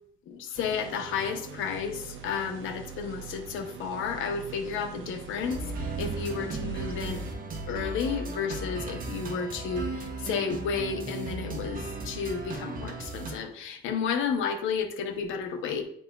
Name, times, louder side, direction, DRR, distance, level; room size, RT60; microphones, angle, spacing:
voice 1, 0.3-7.2 7.7-15.8, left 6 dB, 85° left, 5 dB, 0.8 m, -32 dB
sound 1, 0.5-7.3, right 5 dB, 75° right, 1.0 m, -43 dB
sound 2, 5.4-13.4, right 3 dB, 45° right, 1.2 m, -36 dB
9.9 x 4.1 x 2.3 m, 0.68 s
cardioid pair, 90°, 20 cm